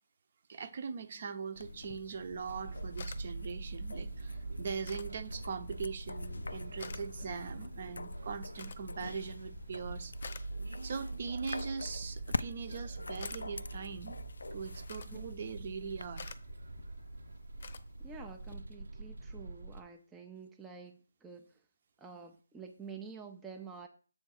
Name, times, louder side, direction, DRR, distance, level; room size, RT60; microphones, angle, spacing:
voice 1, 0.5-10.1 10.8-14.2 14.5-16.4, right 5 dB, 45° right, 0.8 m, -41 dB
sound 1, 1.6-16.1, left 3 dB, 85° left, 0.4 m, -45 dB
sound 2, 1.6-18.5, left 5 dB, 50° left, 0.7 m, -55 dB
sound 3, 2.5-19.8, right 3 dB, 80° right, 0.9 m, -44 dB
voice 2, 18.0-21.5 22.0-23.9, right 5 dB, 5° right, 0.5 m, -49 dB
7.8 x 3.5 x 6.4 m
figure-of-eight pair, 160°, 0 cm